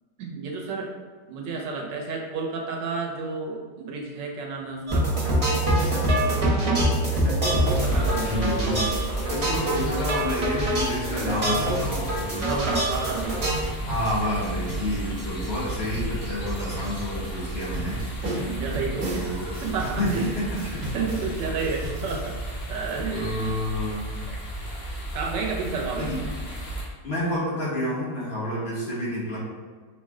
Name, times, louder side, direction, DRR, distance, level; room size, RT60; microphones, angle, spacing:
voice 1, 0.2-0.9 1.3-5.1 6.1-6.9 7.7-8.3 12.4-13.4 18.3-20.4 20.8-22.4 22.7-23.8 25.1-26.1, right 4 dB, 90° right, 0 dB, 1.4 m, -31 dB
sound 1, 4.9-13.6, right 1 dB, 30° right, 0.7 m, -25 dB
sound 2, 5.8-22.3, right 1 dB, 60° right, 1.5 m, -38 dB
sound 3, 7.6-26.9, right 1 dB, 55° left, 1.4 m, -33 dB
voice 2, 8.2-9.0 9.3-12.2 13.8-18.0 19.0-19.6 20.0-20.8 23.1-24.1 25.9-26.2 27.0-29.4, left 1 dB, 40° left, -8 dB, 1.1 m, -29 dB
5.0 x 2.1 x 3.6 m, 1.5 s
omnidirectional pair, 1.9 m